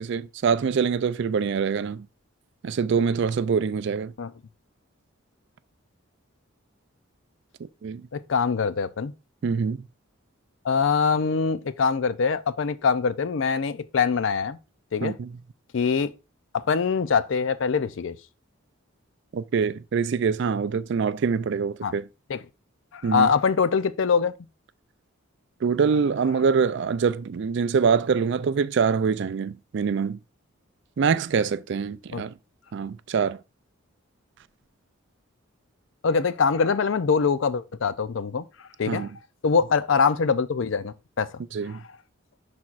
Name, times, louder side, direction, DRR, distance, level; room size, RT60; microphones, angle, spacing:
voice 1, 0.0-2.1 2.6-4.1 7.6-8.1 9.4-9.8 15.0-15.3 19.3-22.0 23.0-23.3 25.6-30.2 31.0-32.3 32.7-33.4 38.9-39.1 41.5-41.8, right 6 dB, 55° right, 0.3 m, -24 dB
voice 2, 8.1-9.1 10.6-14.6 14.9-15.2 15.7-16.1 16.5-18.2 21.8-21.9 22.3-22.4 22.9-24.3 32.1-32.2 36.0-38.5 38.8-39.1 39.4-41.4 41.7-41.8, left 5 dB, 65° left, 0.5 m, -23 dB
10.5 x 4.3 x 2.4 m
head